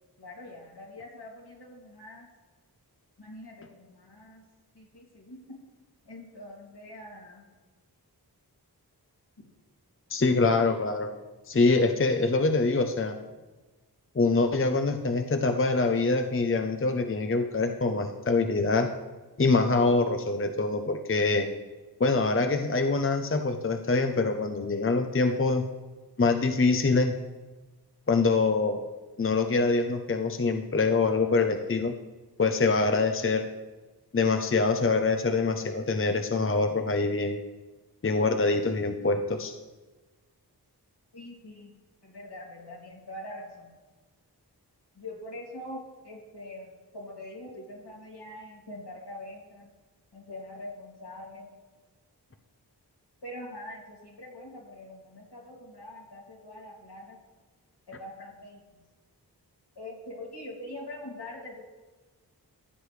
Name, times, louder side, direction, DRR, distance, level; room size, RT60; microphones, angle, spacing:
voice 1, 0.2-2.3 3.2-4.4 4.7-5.4 6.0-7.5 41.1-41.7 42.0-43.7 44.9-46.7 46.9-49.7 50.1-51.5 53.2-57.2 57.9-58.8 59.8-61.6, left 1 dB, 75° left, -2 dB, 2.7 m, -43 dB
voice 2, 10.1-11.1 11.5-13.1 14.1-18.9 19.4-21.5 22.0-25.6 26.2-27.1 28.1-28.8 29.2-31.9 32.4-33.5 34.1-37.4 38.0-39.5, left 3 dB, 30° left, 6 dB, 0.7 m, -25 dB
15.0 x 8.0 x 3.3 m, 1.2 s
wide cardioid pair, 40°, 40 cm